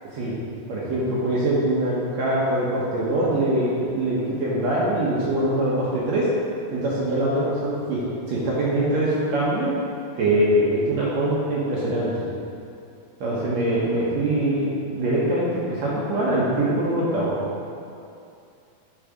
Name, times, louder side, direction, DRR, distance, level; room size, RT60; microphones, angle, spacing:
voice 1, 0.7-6.3 6.7-8.0 8.3-9.7 10.2-12.1 13.2-17.3, right 1 dB, 65° right, -7 dB, 1.9 m, -23 dB
9.0 x 4.0 x 4.9 m, 2.5 s
omnidirectional pair, 4.2 m